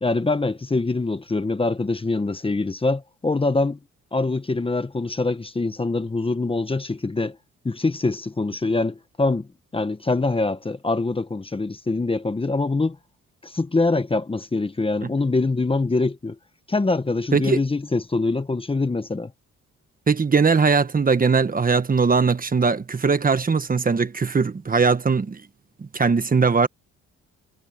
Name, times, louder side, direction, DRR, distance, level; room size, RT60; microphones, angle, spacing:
voice 1, 0.0-3.8 4.1-7.4 7.6-9.5 9.7-13.0 13.4-16.3 16.7-19.3, left 3 dB, 20° left, 1.3 m, -24 dB
voice 2, 20.1-25.4 25.9-26.7, right 5 dB, 30° right, 1.4 m, -20 dB
cardioid pair, 90°, 30 cm